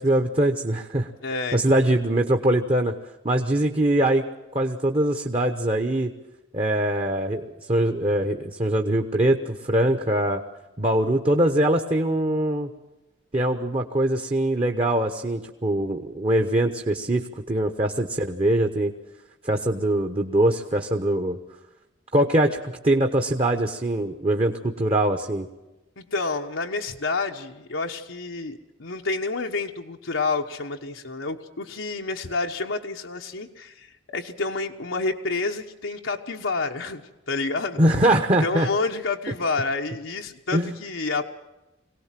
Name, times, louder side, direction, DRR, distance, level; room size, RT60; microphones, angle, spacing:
voice 1, 0.0-1.1 1.5-2.9 3.2-4.2 4.5-6.1 6.5-10.4 10.8-12.7 13.3-18.9 19.4-21.4 22.1-25.5 37.8-38.7 40.5-40.8, right 1 dB, 30° right, 5 dB, 1.0 m, -22 dB
voice 2, 1.2-1.6 26.0-37.0 37.3-37.8 38.4-41.2, left 3 dB, 85° left, 2 dB, 1.2 m, -29 dB
23.0 x 18.0 x 7.5 m, 1.0 s
head